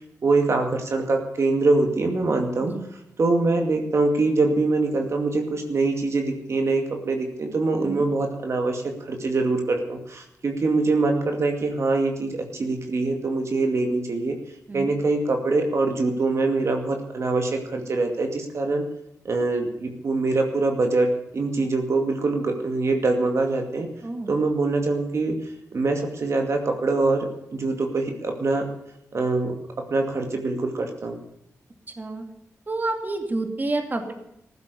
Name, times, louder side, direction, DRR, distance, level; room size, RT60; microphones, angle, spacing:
voice 1, 0.2-2.7 3.2-14.4 14.7-18.9 19.2-23.9 24.3-25.4 25.7-28.7 29.1-31.2, right 3 dB, 55° right, 4 dB, 2.3 m, -24 dB
voice 2, 24.0-24.3 32.0-32.2 32.7-34.1, right 2 dB, 30° right, 5 dB, 2.4 m, -29 dB
15.0 x 12.0 x 7.0 m, 0.79 s
cardioid pair, 75°, 6 cm